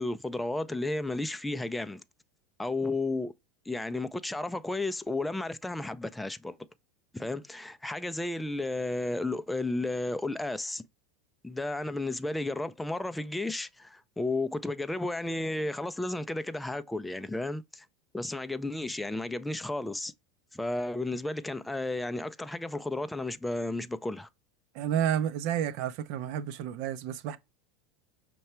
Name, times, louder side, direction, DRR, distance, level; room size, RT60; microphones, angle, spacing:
voice 1, 0.0-2.0 2.6-3.3 3.7-6.6 7.1-10.8 11.4-17.9 18.1-20.1 20.5-24.3, left 2 dB, 5° left, 0.4 m, -33 dB
voice 2, 24.7-27.4, right 9 dB, 60° right, 0.6 m, -30 dB
5.5 x 2.2 x 4.2 m
supercardioid pair, 120°, 0 cm